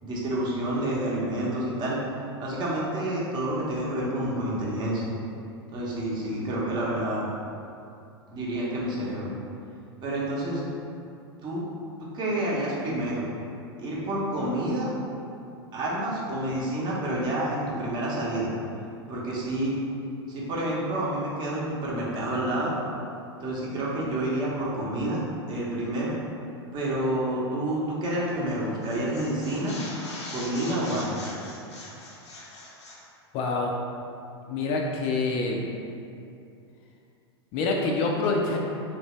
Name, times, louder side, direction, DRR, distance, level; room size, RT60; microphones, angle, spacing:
voice 1, 0.0-2.0 2.4-5.1 5.7-7.3 8.3-9.3 10.0-10.6 11.4-11.6 12.1-13.3 13.8-14.9 15.7-18.5 19.1-19.8 20.3-22.7 23.4-25.2 25.5-26.1 26.7-29.7 30.3-31.2, right 1 dB, 30° right, -5 dB, 0.8 m, -29 dB
sound 1, 28.3-28.5 28.8-33.0, left 2 dB, 85° left, 0.7 m, -41 dB
voice 2, 33.3-33.8 34.5-35.6 37.5-38.6, left 3 dB, 40° left, 0 dB, 0.4 m, -26 dB
2.9 x 2.7 x 3.2 m, 2.6 s
hypercardioid pair, 100°, 14 cm